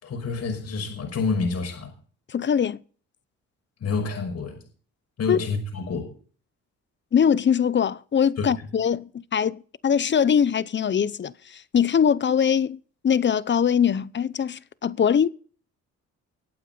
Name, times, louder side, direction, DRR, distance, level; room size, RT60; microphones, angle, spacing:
voice 1, 0.0-1.9 3.8-4.6 5.2-6.1 8.4-8.5, left 4 dB, 55° left, 5.7 m, -28 dB
voice 2, 2.3-2.8 5.3-5.4 7.1-12.8 13.0-15.3, left 7 dB, 40° left, 0.8 m, -22 dB
23.0 x 8.9 x 4.0 m
cardioid pair, 90°, 30 cm